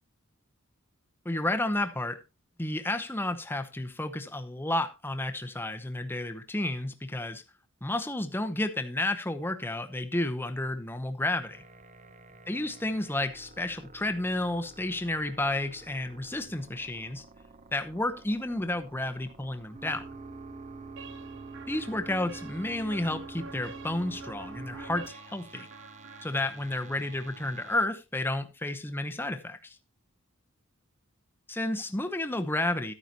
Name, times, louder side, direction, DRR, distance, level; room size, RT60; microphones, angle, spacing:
voice 1, 1.2-2.2 2.6-7.4 7.8-11.6 12.5-17.2 17.7-20.1 21.7-25.7 26.2-29.8 31.5-32.9, left 1 dB, 10° left, 0.8 m, -31 dB
sound 1, 11.4-27.9, right 3 dB, 35° right, 0.8 m, -47 dB
sound 2, 21.0-26.8, right 4 dB, 60° right, 0.9 m, -48 dB
13.0 x 9.4 x 2.9 m
head